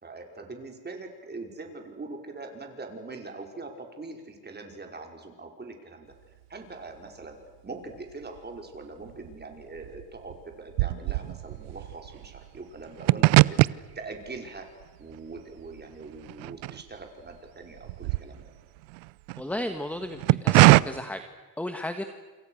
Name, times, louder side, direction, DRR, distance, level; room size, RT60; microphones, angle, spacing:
voice 1, 0.0-6.1 6.5-7.4 7.6-14.7 15.0-18.4, right 3 dB, 20° right, 3 dB, 5.4 m, -42 dB
sound 1, 8.0-8.8 9.0-17.3 17.6-19.4 20.0-20.8, right 24 dB, 90° right, 0.7 m, -23 dB
voice 2, 19.4-21.2 21.6-22.0, left 1 dB, 5° left, 8 dB, 1.6 m, -34 dB
28.0 x 27.5 x 6.5 m, 1.3 s
cardioid pair, 110°, 46 cm